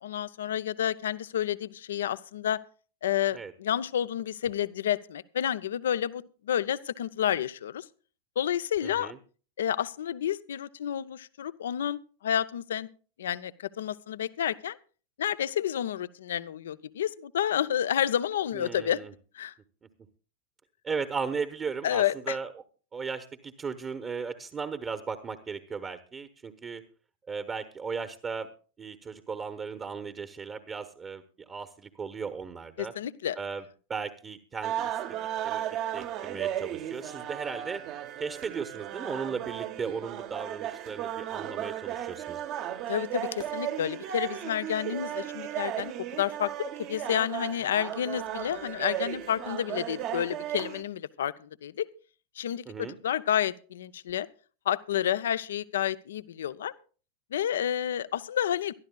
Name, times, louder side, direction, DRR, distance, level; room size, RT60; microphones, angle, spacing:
voice 1, 0.0-2.6 3.0-7.8 8.4-9.1 9.6-12.9 13.2-14.8 15.2-19.0 19.3-19.5 21.8-22.4 32.8-33.4 42.9-51.9 52.4-54.3 54.7-56.7 57.3-58.8, left 10 dB, 60° left, 16 dB, 0.6 m, -30 dB
voice 2, 8.8-9.2 18.5-19.1 20.8-22.5 22.9-26.8 27.3-28.5 28.8-32.9 33.4-33.6 33.9-35.0 35.4-35.6 35.9-37.8 38.2-42.4 52.7-53.0, right 5 dB, 20° right, 10 dB, 1.1 m, -36 dB
sound 1, 34.6-50.8, right 11 dB, 40° right, 1.0 m, -35 dB
23.5 x 12.5 x 2.3 m, 0.38 s
figure-of-eight pair, 90°, 0 cm